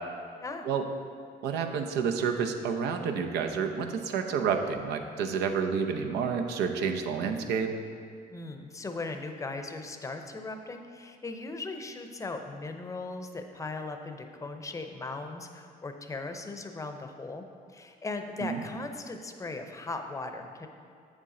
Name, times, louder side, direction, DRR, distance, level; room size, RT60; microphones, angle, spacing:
voice 1, 1.4-7.7 18.4-18.6, right 6 dB, 80° right, 5 dB, 0.7 m, -29 dB
voice 2, 8.3-20.7, left 3 dB, 20° left, 6 dB, 0.6 m, -38 dB
7.7 x 7.1 x 3.8 m, 2.3 s
cardioid pair, 110°, 17 cm